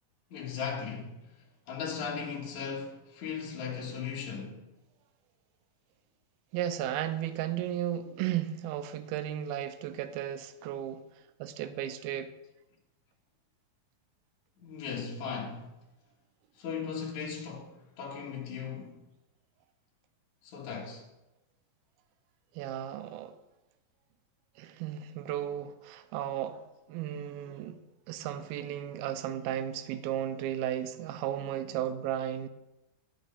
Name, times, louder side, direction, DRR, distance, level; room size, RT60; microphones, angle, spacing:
voice 1, 0.3-1.1 1.7-4.6 14.6-15.7 16.6-18.9 20.4-21.0, left 6 dB, 60° left, 2.8 m, -37 dB
voice 2, 6.5-11.0 11.4-12.3 22.5-23.3 24.6-26.6 26.9-27.8 28.1-32.5, right 11 dB, 85° right, 2.4 m, -34 dB
10.0 x 6.5 x 5.4 m
omnidirectional pair, 4.3 m